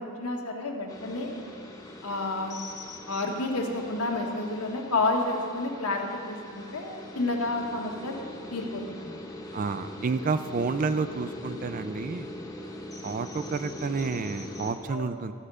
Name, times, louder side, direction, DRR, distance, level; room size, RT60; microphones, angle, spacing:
voice 1, 0.0-1.4 2.0-2.6 3.1-8.1 8.5-9.2 14.9-15.1, left 2 dB, 80° left, 1 dB, 1.3 m, -30 dB
sound 1, 0.9-14.7, left 1 dB, 15° left, 0.9 m, -42 dB
voice 2, 9.5-12.3 13.0-15.3, right 4 dB, 35° right, 11 dB, 0.3 m, -30 dB
14.0 x 4.9 x 6.7 m, 2.5 s
head